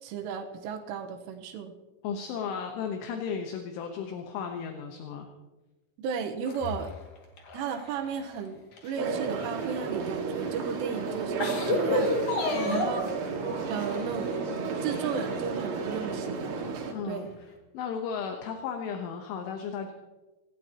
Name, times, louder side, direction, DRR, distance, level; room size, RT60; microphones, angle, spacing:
voice 1, 0.0-1.7 6.0-6.9 7.5-12.2 12.7-13.0 13.7-14.3 14.8-16.6 17.1-17.3, right 7 dB, 80° right, 5 dB, 3.5 m, -34 dB
voice 2, 2.0-5.3 12.5-12.9 16.9-17.2 17.7-19.9, left 6 dB, 75° left, 4 dB, 3.4 m, -35 dB
sound 1, 6.4-8.3 8.7-10.1 10.7-10.8 11.2-13.1 13.7-14.4 14.9-15.7 16.0-16.1 17.2-17.3, left 2 dB, 50° left, 2.9 m, -31 dB
sound 2, 9.0-16.9, right 4 dB, 60° right, 3.6 m, -32 dB
25.5 x 16.5 x 2.9 m, 1.2 s
omnidirectional pair, 5.9 m